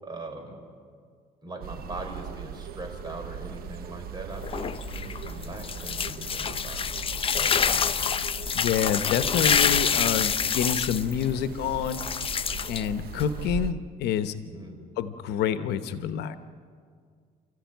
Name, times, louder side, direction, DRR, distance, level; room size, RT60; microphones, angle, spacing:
voice 1, 0.0-0.7 1.4-7.9 14.5-14.8, right 2 dB, 25° right, 3 dB, 5.3 m, -41 dB
sound 1, 1.6-13.7, right 8 dB, 60° right, 0.9 m, -39 dB
sound 2, 4.3-13.5, left 7 dB, 35° left, 0.7 m, -27 dB
voice 2, 8.5-12.0 12.7-14.3 15.0-16.4, left 9 dB, 80° left, 11 dB, 1.1 m, -27 dB
29.0 x 14.0 x 9.4 m, 2.1 s
cardioid pair, 110°, 17 cm